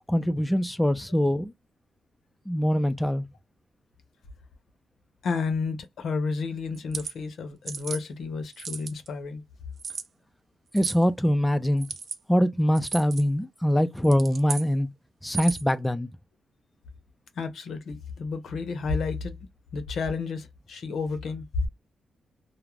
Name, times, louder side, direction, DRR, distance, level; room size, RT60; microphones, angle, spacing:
voice 1, 0.1-1.5 2.5-3.2 10.7-11.9 12.3-14.9 15.2-16.1, equal, 5° left, 0.3 m, -23 dB
voice 2, 5.2-9.4 17.4-19.4 19.7-21.7, left 4 dB, 75° left, 0.7 m, -31 dB
sound 1, 6.7-7.1 7.7-8.0 8.5-9.1 9.8-10.1 10.7-11.0 11.8-12.2 12.7-13.2 14.0-14.7 15.2-15.7, right 5 dB, 60° right, 0.4 m, -35 dB
2.3 x 2.1 x 3.2 m
cardioid pair, 80°, 0 cm